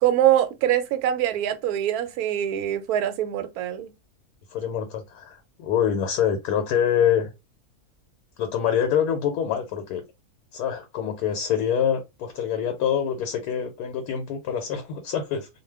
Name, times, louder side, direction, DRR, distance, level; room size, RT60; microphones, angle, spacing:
voice 1, 0.0-3.9, right 11 dB, 75° right, 1.0 m, -23 dB
voice 2, 4.5-7.3 8.4-10.0 10.5-15.5, left 8 dB, 80° left, 1.1 m, -25 dB
2.4 x 2.2 x 3.2 m
omnidirectional pair, 1.7 m